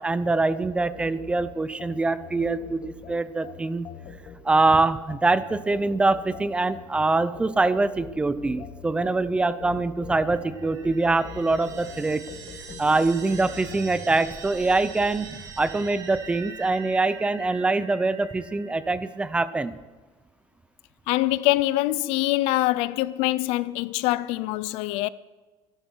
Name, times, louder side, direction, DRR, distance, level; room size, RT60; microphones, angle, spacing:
voice 1, 0.0-3.9 4.4-12.2 12.8-15.3 15.6-19.8, right 3 dB, 10° right, 0.6 m, -24 dB
sound 1, 0.8-13.9, left 7 dB, 50° left, 1.7 m, -43 dB
sound 2, 10.1-19.4, right 5 dB, 35° right, 2.2 m, -43 dB
voice 2, 21.1-25.1, left 17 dB, 80° left, 0.6 m, -24 dB
25.5 x 12.5 x 4.6 m
cardioid pair, 165°, 10 cm